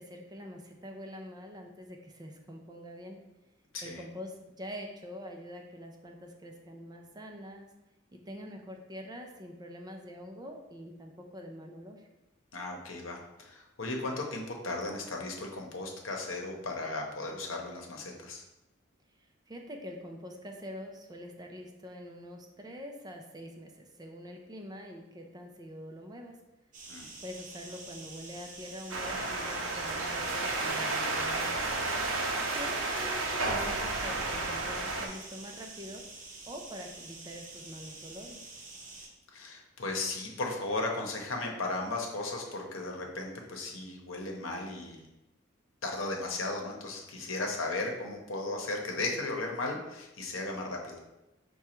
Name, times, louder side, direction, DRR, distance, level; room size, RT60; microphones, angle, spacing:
voice 1, 0.0-3.2 3.8-7.7 8.1-12.1 19.2-26.4 27.2-31.6 32.4-36.1 36.4-38.4, equal, 20° right, 2 dB, 0.5 m, -45 dB
voice 2, 3.7-4.0 12.5-18.4 26.9-27.1 39.3-45.1 45.8-51.0, left 2 dB, 85° left, 1 dB, 0.8 m, -36 dB
sound 1, 26.7-39.1, right 3 dB, 40° right, 0.8 m, -47 dB
sound 2, 28.9-35.1, right 2 dB, 75° right, 0.6 m, -32 dB
4.9 x 2.3 x 4.3 m, 0.97 s
head